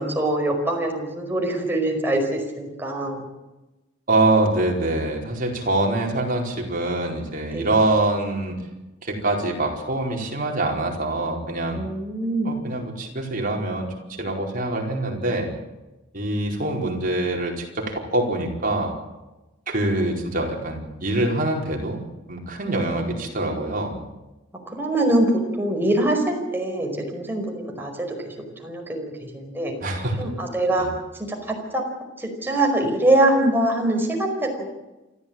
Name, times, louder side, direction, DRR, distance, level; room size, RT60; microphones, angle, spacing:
voice 1, 0.0-3.2 7.5-7.7 11.7-12.6 22.7-23.1 24.7-25.3 25.6-28.3 28.6-29.7 30.2-30.9 31.3-31.8 32.2-34.7, right 1 dB, 10° right, 1 dB, 5.1 m, -23 dB
voice 2, 4.1-8.5 9.0-11.8 12.4-13.9 14.2-15.5 16.1-18.9 19.7-22.0 22.3-24.0 29.8-30.2 30.8-30.9, right 2 dB, 45° right, 1 dB, 4.7 m, -24 dB
28.0 x 13.5 x 8.8 m, 1.0 s
head